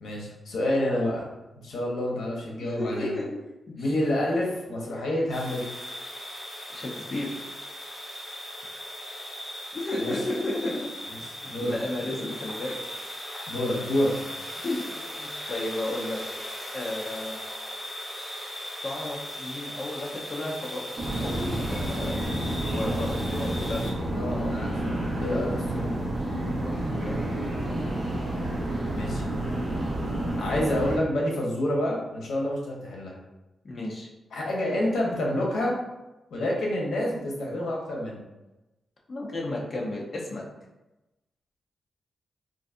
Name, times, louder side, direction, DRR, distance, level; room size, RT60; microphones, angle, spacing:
voice 1, 0.0-1.3 1.6-3.1 3.8-5.6 10.0-10.1 11.5-11.7 13.5-14.1 24.1-26.0 28.9-29.2 30.4-33.1 34.3-35.7 36.3-38.2, left 1 dB, 85° left, -2 dB, 0.9 m, -28 dB
voice 2, 2.6-3.4 3.8-4.0 6.7-7.4 9.7-10.9 11.4-12.8 14.6-14.8 15.1-16.2 16.7-17.4 18.8-20.8 21.2-24.5 26.6-27.3 33.6-34.1 39.1-40.4, left 1 dB, 40° left, -2 dB, 0.7 m, -33 dB
sound 1, 5.3-23.9, left 1 dB, 20° left, 1.2 m, -38 dB
sound 2, 21.0-31.0, right 1 dB, 35° right, 1.0 m, -29 dB
3.9 x 2.6 x 2.5 m, 1.0 s
wide cardioid pair, 105°, 0 cm